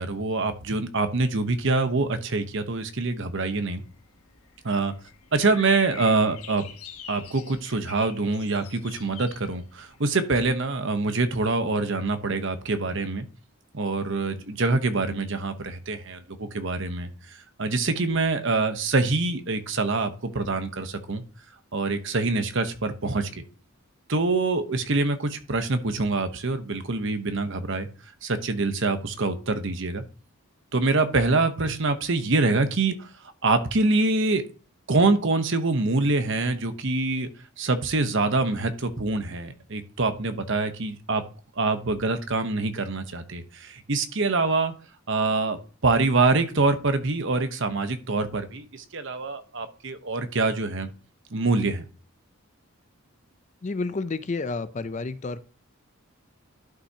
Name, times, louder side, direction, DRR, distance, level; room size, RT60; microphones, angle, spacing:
voice 1, 0.0-3.8 4.6-4.9 5.3-6.6 7.1-13.2 13.7-17.1 17.6-21.2 21.7-23.4 24.1-27.9 28.2-30.0 30.7-33.1 33.4-34.4 34.9-37.3 37.6-41.2 41.6-44.7 45.1-50.9 51.3-51.9, right 3 dB, 60° right, 9 dB, 1.0 m, -25 dB
sound 1, 3.4-10.0, left 7 dB, 85° left, 1.2 m, -45 dB
voice 2, 53.6-55.4, left 3 dB, 35° left, 13 dB, 0.5 m, -30 dB
11.5 x 5.6 x 2.8 m, 0.38 s
head